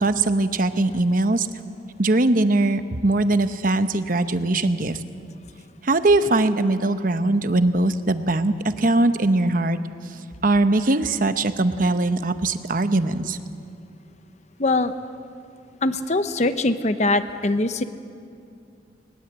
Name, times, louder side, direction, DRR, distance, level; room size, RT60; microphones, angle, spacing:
voice 1, 0.0-1.5 2.0-5.0 5.8-9.8 10.4-13.4, right 2 dB, 50° right, 10 dB, 0.9 m, -21 dB
voice 2, 14.6-14.9 15.8-17.8, left 2 dB, 40° left, 10 dB, 0.9 m, -22 dB
20.5 x 20.0 x 8.1 m, 2.5 s
head